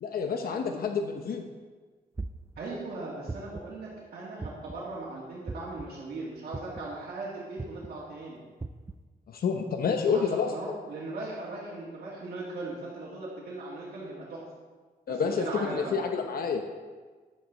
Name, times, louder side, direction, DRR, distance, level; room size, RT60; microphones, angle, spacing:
voice 1, 0.0-1.4 9.3-10.7 15.1-16.6, left 5 dB, 70° left, 5 dB, 0.8 m, -29 dB
sound 1, 2.2-2.6 3.3-3.7 4.4-4.9 5.5-5.8 6.5-6.9 7.6-7.9 8.6-8.9, right 3 dB, 15° right, 0.4 m, -37 dB
voice 2, 2.6-8.4 10.1-14.4 15.1-15.9, right 2 dB, 80° right, -7 dB, 2.1 m, -38 dB
11.0 x 8.3 x 4.0 m, 1.4 s
wide cardioid pair, 115°, 16 cm